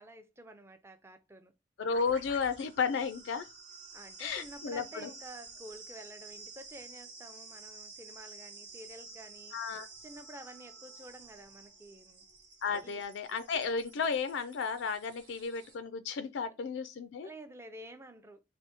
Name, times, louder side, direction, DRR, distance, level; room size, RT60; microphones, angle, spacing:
voice 1, 0.0-1.5 3.9-9.6 10.0-12.2 12.8-13.0 17.2-18.4, right 1 dB, 15° right, 0.4 m, -50 dB
voice 2, 1.8-3.5 4.2-5.1 9.5-9.9 12.6-17.3, left 5 dB, 75° left, 0.4 m, -33 dB
sound 1, 1.9-15.8, right 3 dB, 80° right, 1.1 m, -51 dB
3.4 x 2.6 x 4.4 m
head